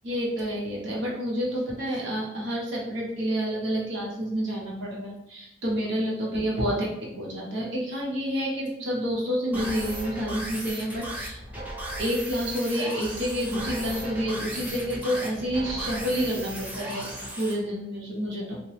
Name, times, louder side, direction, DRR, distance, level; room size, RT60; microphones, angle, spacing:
voice 1, 0.0-11.4 12.0-17.1 17.4-18.6, equal, 80° right, -3 dB, 0.9 m, -29 dB
sound 1, 9.5-17.5, right 1 dB, 10° right, 0.5 m, -36 dB
2.9 x 2.1 x 3.1 m, 0.85 s
head